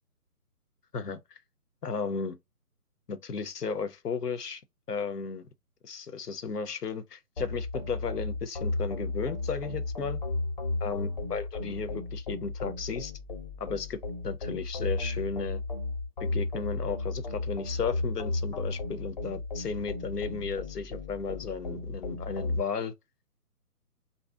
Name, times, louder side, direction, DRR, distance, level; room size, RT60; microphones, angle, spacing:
voice 1, 0.9-1.4 1.8-2.4 3.1-4.6 4.9-5.4 5.8-10.2 10.8-13.1 13.6-15.6 16.2-22.9, left 5 dB, 85° left, 0.7 m, -34 dB
sound 1, 7.4-22.6, left 2 dB, 30° left, 0.6 m, -34 dB
2.7 x 2.0 x 3.2 m
figure-of-eight pair, 145°, 46 cm